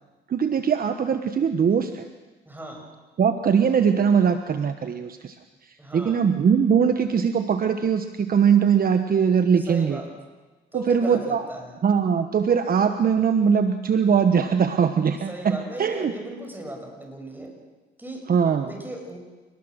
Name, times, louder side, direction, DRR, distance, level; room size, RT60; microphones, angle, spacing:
voice 1, 0.3-2.1 3.2-5.4 5.6-10.0 10.7-11.4 11.8-16.1 18.3-18.7, right 7 dB, 45° right, 8 dB, 1.2 m, -21 dB
voice 2, 2.5-2.8 5.8-6.2 9.7-10.1 10.7-11.7 15.3-17.5 18.0-18.2 18.6-19.2, right 1 dB, 10° right, 2 dB, 7.1 m, -36 dB
29.0 x 20.0 x 6.6 m, 1.2 s
cardioid pair, 90°, 20 cm